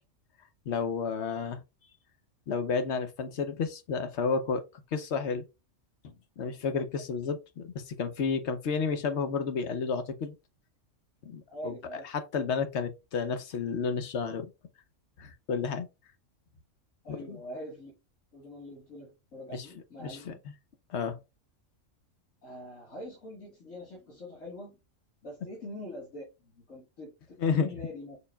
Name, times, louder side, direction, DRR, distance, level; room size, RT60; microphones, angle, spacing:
voice 1, 0.7-1.6 2.5-4.6 4.9-5.4 6.4-10.3 11.2-14.5 15.2-15.9 17.1-17.4 19.5-19.7 20.0-20.3 20.9-21.2 27.4-27.7, left 5 dB, 65° left, 1.0 m, -31 dB
voice 2, 11.5-12.0 17.0-17.9 18.3-20.4 22.4-24.8 25.2-28.2, left 1 dB, 80° left, 2.2 m, -44 dB
5.2 x 4.5 x 2.3 m
omnidirectional pair, 1.3 m